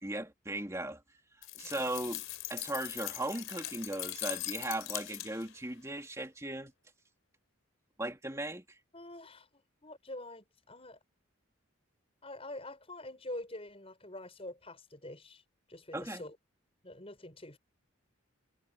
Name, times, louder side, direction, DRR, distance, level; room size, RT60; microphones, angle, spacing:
voice 1, 0.0-1.2 1.5-2.2 2.5-6.7 8.0-8.6 15.9-16.2, right 1 dB, 15° right, 3.2 m, -37 dB
sound 1, 1.4-5.6, left 15 dB, 70° left, 3.5 m, -41 dB
voice 2, 8.9-11.0 12.2-15.4 15.7-16.4 16.8-17.6, left 1 dB, 30° left, 6.5 m, -46 dB
head